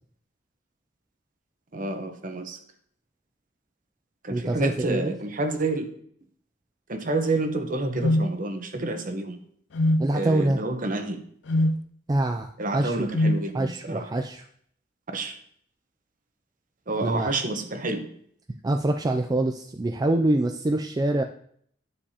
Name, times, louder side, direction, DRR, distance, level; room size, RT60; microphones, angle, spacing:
voice 1, 1.7-2.6 4.2-5.9 6.9-9.4 10.1-11.2 12.6-14.0 15.1-15.3 16.9-18.1, right 2 dB, 45° right, 6 dB, 1.0 m, -29 dB
voice 2, 4.3-5.1 10.0-10.6 12.1-13.1 13.5-14.4 17.0-17.3 18.6-21.2, right 1 dB, 20° right, 4 dB, 0.3 m, -25 dB
sound 1, 8.0-8.3 9.7-10.1 11.5-11.8 13.1-13.4, left 1 dB, 90° left, 0.5 m, -21 dB
9.8 x 6.7 x 2.9 m, 0.63 s
head